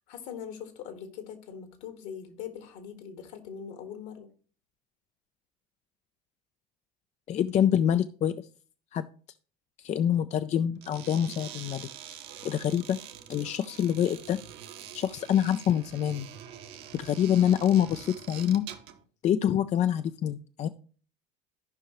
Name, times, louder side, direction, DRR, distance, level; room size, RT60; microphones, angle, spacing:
voice 1, 0.1-4.3, left 8 dB, 65° left, 7 dB, 1.7 m, -41 dB
voice 2, 7.3-8.5 8.9-9.1 9.8-11.9 12.4-13.0 13.3-14.4 14.9-16.3 16.9-18.7 19.2-20.7, left 10 dB, 35° left, 11 dB, 0.4 m, -26 dB
sound 1, 10.8-19.0, right 10 dB, 60° right, 1.1 m, -45 dB
14.0 x 5.5 x 3.0 m, 0.41 s
hypercardioid pair, 70°, 20 cm